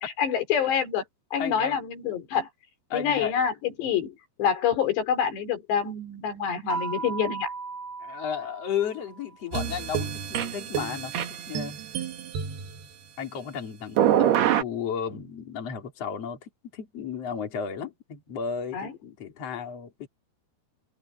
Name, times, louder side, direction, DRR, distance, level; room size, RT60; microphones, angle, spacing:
voice 1, 0.2-1.1 1.3-2.5 2.9-7.5 18.7-18.9, left 7 dB, 90° left, 5.7 m, -26 dB
voice 2, 1.4-1.8 2.9-3.4 8.0-12.1 13.2-20.1, left 7 dB, 40° left, 3.8 m, -34 dB
sound 1, 6.7-9.4, right 4 dB, 20° right, 5.0 m, -36 dB
sound 2, 9.5-12.8 14.0-14.6, right 10 dB, 70° right, 3.8 m, -26 dB
omnidirectional pair, 4.8 m